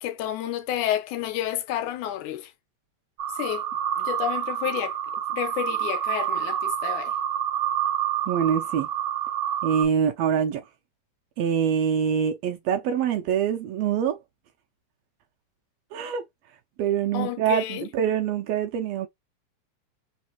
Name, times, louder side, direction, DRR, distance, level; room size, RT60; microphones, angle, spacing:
voice 1, 0.0-2.5 3.4-3.6 4.0-4.9 5.3-7.1 17.1-17.9, left 11 dB, 85° left, 2.3 m, -30 dB
sound 1, 3.2-9.8, right 10 dB, 55° right, 1.0 m, -28 dB
voice 2, 8.3-8.9 9.6-10.6 11.4-14.2 15.9-16.2 16.8-19.1, right 8 dB, 80° right, 1.6 m, -25 dB
4.2 x 3.7 x 2.8 m
omnidirectional pair, 3.5 m